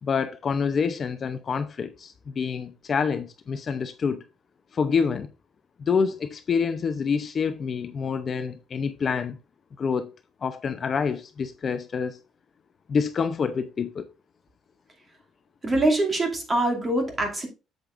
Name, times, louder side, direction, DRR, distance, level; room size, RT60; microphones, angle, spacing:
voice 1, 0.0-4.2 4.7-5.3 5.8-9.4 9.8-10.1 10.4-12.2 12.9-14.1, left 6 dB, 30° left, 0.6 m, -27 dB
voice 2, 15.6-17.5, right 2 dB, 20° right, 2.5 m, -24 dB
8.4 x 7.9 x 2.5 m
cardioid pair, 165°, 0 cm